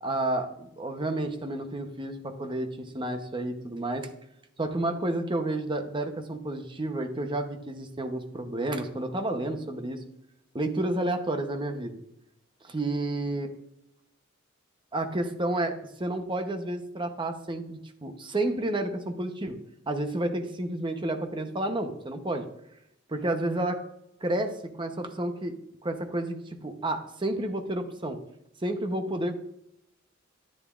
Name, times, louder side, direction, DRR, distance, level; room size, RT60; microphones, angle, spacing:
voice 1, 0.0-4.1 4.6-10.0 10.5-12.0 12.7-13.5 14.9-15.7 16.0-19.6 19.9-22.4 23.1-23.8 24.2-25.5 25.8-28.2 28.6-29.3, right 1 dB, 25° right, 6 dB, 0.8 m, -30 dB
10.5 x 10.0 x 2.5 m, 0.81 s
head